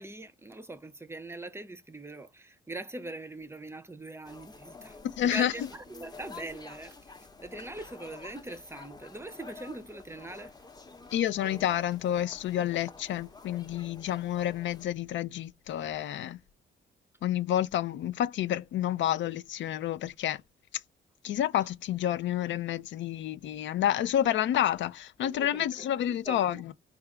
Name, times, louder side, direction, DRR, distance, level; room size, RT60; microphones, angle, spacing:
voice 1, 0.0-10.5 25.2-26.6, right 2 dB, 10° right, 0.6 m, -42 dB
sound 1, 4.2-14.9, left 4 dB, 20° left, 0.8 m, -49 dB
voice 2, 5.2-5.5 11.1-16.4 17.2-20.4 21.2-26.7, left 11 dB, 70° left, 0.5 m, -29 dB
3.3 x 2.3 x 3.6 m
cardioid pair, 90°, 20 cm